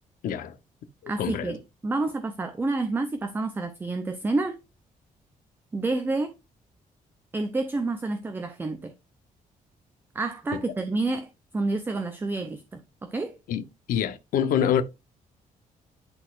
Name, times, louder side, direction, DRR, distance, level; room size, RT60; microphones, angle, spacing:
voice 1, 0.2-0.5 1.0-1.5 13.5-14.8, left 9 dB, 80° left, 0.8 m, -26 dB
voice 2, 1.1-4.6 5.7-6.3 7.3-8.9 10.1-13.4, right 3 dB, 15° right, 0.6 m, -29 dB
10.5 x 4.1 x 2.4 m
cardioid pair, 175°, 14 cm